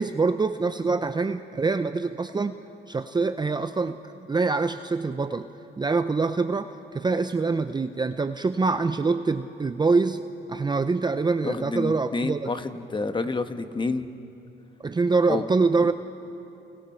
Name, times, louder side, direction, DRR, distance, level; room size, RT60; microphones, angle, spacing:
voice 1, 0.0-2.6 2.9-5.5 5.8-10.2 10.5-12.5 14.8-15.9, right 4 dB, 20° right, 10 dB, 0.6 m, -25 dB
voice 2, 11.4-14.1 15.3-15.4 15.8-15.9, left 3 dB, 25° left, 8 dB, 1.3 m, -29 dB
28.5 x 28.0 x 4.4 m, 2.9 s
cardioid pair, 90°, 20 cm